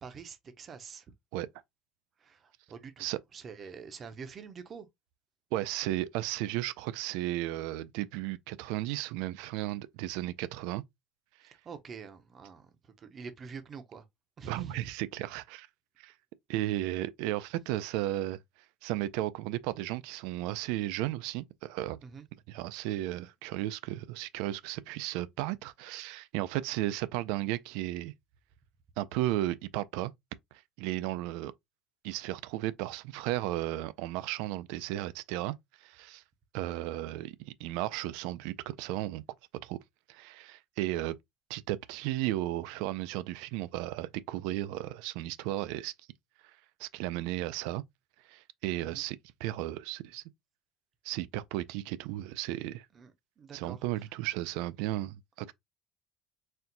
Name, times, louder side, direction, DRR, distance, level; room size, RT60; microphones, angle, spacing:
voice 1, 0.0-1.1 2.2-3.1 3.3-4.9 11.5-14.1 14.4-14.9 22.0-22.3 48.8-49.0 52.9-53.1 53.4-53.8, right 5 dB, 25° right, 0.6 m, -46 dB
voice 2, 5.5-10.8 11.4-11.5 14.5-15.7 16.0-16.1 16.5-18.4 18.8-22.0 22.5-28.1 29.0-30.1 30.8-31.5 32.0-35.6 35.8-36.2 36.5-39.2 39.6-39.8 40.1-41.1 41.5-45.9 46.4-47.8 48.3-50.2 51.0-52.9 53.5-55.5, right 15 dB, 75° right, 0.4 m, -34 dB
4.3 x 2.2 x 3.8 m
cardioid pair, 180°, 0 cm